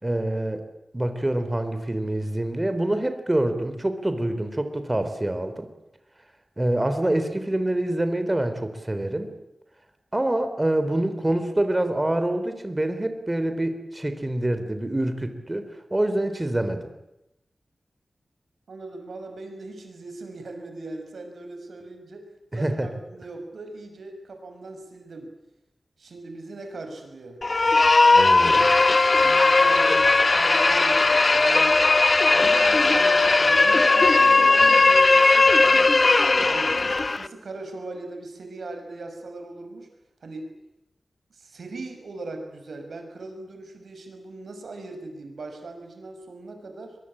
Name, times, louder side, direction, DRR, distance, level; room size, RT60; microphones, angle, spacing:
voice 1, 0.0-0.6 0.9-5.7 6.6-9.3 10.1-16.8 22.5-22.9 28.1-28.7, right 1 dB, 20° right, 8 dB, 3.6 m, -26 dB
voice 2, 18.7-25.3 26.0-27.4 29.2-31.8 32.3-36.8 37.2-39.9 40.2-40.5 41.3-47.0, right 2 dB, 85° right, 6 dB, 5.8 m, -39 dB
sound 1, 27.4-37.3, left 3 dB, 45° left, 1.0 m, -18 dB
23.5 x 22.5 x 8.7 m, 0.90 s
wide cardioid pair, 70°, 0 cm